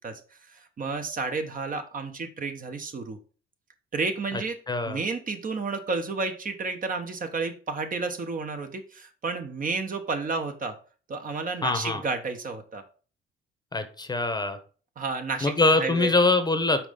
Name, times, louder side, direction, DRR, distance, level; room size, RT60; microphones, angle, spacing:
voice 1, 0.0-3.2 3.9-4.6 4.8-10.8 11.1-12.8 15.0-16.1, right 4 dB, 45° right, 6 dB, 1.1 m, -31 dB
voice 2, 4.7-5.0 11.6-12.0 13.7-14.6 15.4-16.9, left 3 dB, 20° left, 9 dB, 0.9 m, -23 dB
5.9 x 4.2 x 5.2 m, 0.39 s
cardioid pair, 90°, 20 cm